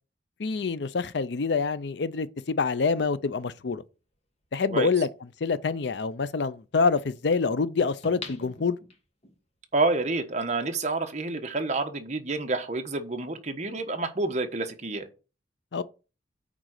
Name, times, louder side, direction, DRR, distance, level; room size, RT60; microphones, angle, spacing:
voice 1, 0.4-3.8 4.5-5.1 5.4-8.8 15.7-15.8, left 4 dB, 65° left, 0.5 m, -26 dB
sound 1, 4.4-4.5 8.0-9.4 9.9-10.0, left 3 dB, 35° left, 1.6 m, -42 dB
voice 2, 9.7-15.1, right 3 dB, 40° right, 1.1 m, -28 dB
8.9 x 3.7 x 6.5 m
head